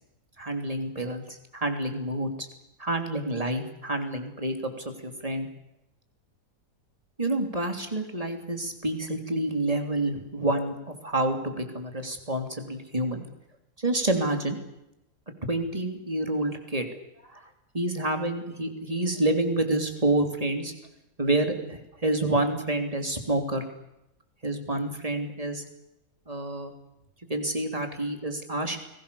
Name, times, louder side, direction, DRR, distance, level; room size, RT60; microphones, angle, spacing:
voice 1, 0.4-2.5 2.8-5.5 7.2-13.2 13.8-14.6 15.5-16.9 17.2-17.5 17.7-20.7 21.2-23.6 24.4-25.6 26.3-26.7 27.3-28.8, right 2 dB, 20° right, 5 dB, 3.3 m, -28 dB
29.5 x 20.5 x 7.1 m, 0.88 s
omnidirectional pair, 1.8 m